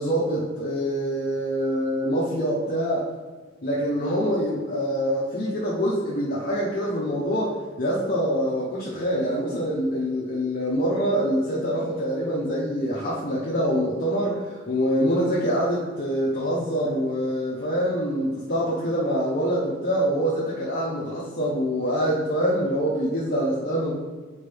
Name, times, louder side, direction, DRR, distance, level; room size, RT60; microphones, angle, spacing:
voice 1, 0.0-3.1 3.6-23.9, equal, 45° left, -6 dB, 0.8 m, -25 dB
7.2 x 4.5 x 3.4 m, 1.3 s
head